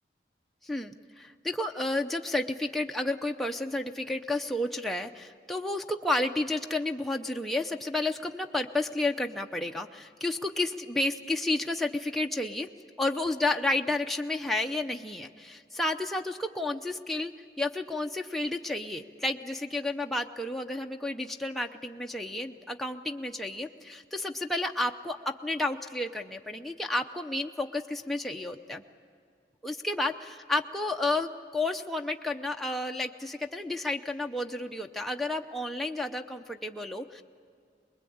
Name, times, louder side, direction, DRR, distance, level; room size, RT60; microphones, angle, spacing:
voice 1, 0.6-12.7 13.0-28.8 29.6-37.2, left 2 dB, ahead, 2 dB, 0.6 m, -31 dB
24.5 x 21.0 x 8.6 m, 2.2 s
head